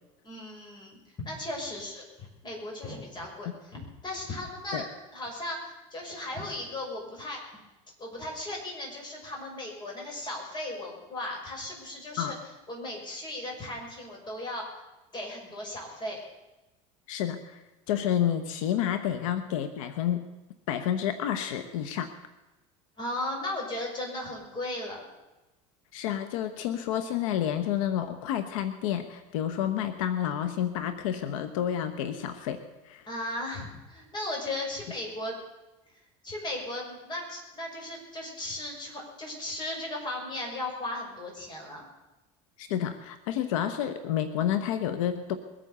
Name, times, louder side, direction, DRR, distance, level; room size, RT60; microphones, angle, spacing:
voice 1, 0.2-4.9 5.1-7.4 8.0-12.3 12.7-14.7 15.1-16.2 23.0-25.0 33.1-35.4 36.2-41.9, left 1 dB, 25° left, 0 dB, 5.9 m, -36 dB
voice 2, 17.1-17.6 17.9-20.3 20.7-22.1 25.9-33.0 42.6-45.4, left 10 dB, 90° left, 10 dB, 1.1 m, -30 dB
21.5 x 9.1 x 6.8 m, 1.0 s
supercardioid pair, 120°, 17 cm